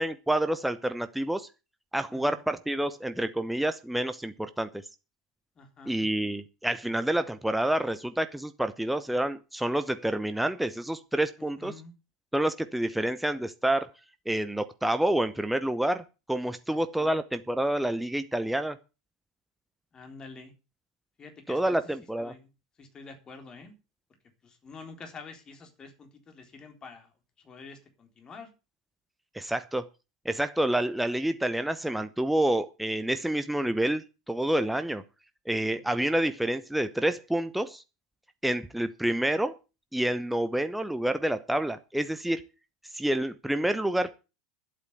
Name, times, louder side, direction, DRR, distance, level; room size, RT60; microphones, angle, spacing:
voice 1, 0.0-1.5 1.9-4.8 5.9-11.7 12.3-13.9 14.3-18.8 21.5-22.3 29.3-29.9 30.2-35.0 35.5-37.8 38.4-39.6 39.9-42.4 42.9-44.2, right 1 dB, 5° right, 10 dB, 0.9 m, -28 dB
voice 2, 2.1-2.4 5.6-6.0 11.4-11.9 16.7-17.1 19.9-20.5 21.2-21.9 22.2-22.5 22.8-23.7 24.4-27.1 27.4-28.5 35.7-35.8, left 4 dB, 25° left, 5 dB, 3.9 m, -47 dB
11.0 x 8.4 x 8.0 m, 0.30 s
figure-of-eight pair, 85°, 3 cm